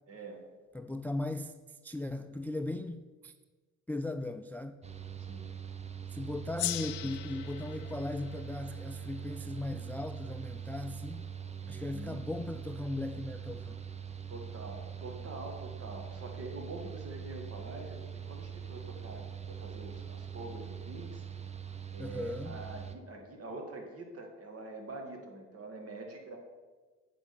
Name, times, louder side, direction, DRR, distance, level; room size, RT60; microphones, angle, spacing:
voice 1, 0.1-0.4 5.3-5.5 11.6-12.2 14.3-18.0 18.2-21.3 21.9-26.4, right 2 dB, 50° right, 2.0 m, -45 dB
voice 2, 0.7-1.6 1.8-3.3 3.9-4.8 6.1-11.2 11.7-13.8 22.0-22.6, left 2 dB, 5° left, 0.3 m, -38 dB
Mechanical fan, 4.8-23.0, right 8 dB, 20° right, 0.8 m, -43 dB
Gong, 6.6-11.3, left 13 dB, 85° left, 0.6 m, -42 dB
9.1 x 5.3 x 7.0 m
cardioid pair, 90°, 30 cm